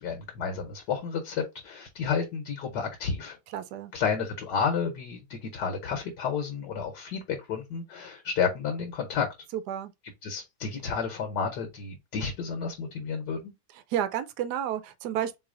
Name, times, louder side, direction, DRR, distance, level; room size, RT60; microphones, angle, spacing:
voice 1, 0.0-3.4 3.9-9.3 10.2-13.5, left 6 dB, 75° left, 1.5 m, -31 dB
voice 2, 3.5-3.9 9.5-9.9 13.9-15.4, right 10 dB, 80° right, 1.2 m, -31 dB
4.0 x 3.2 x 3.8 m
omnidirectional pair, 1.8 m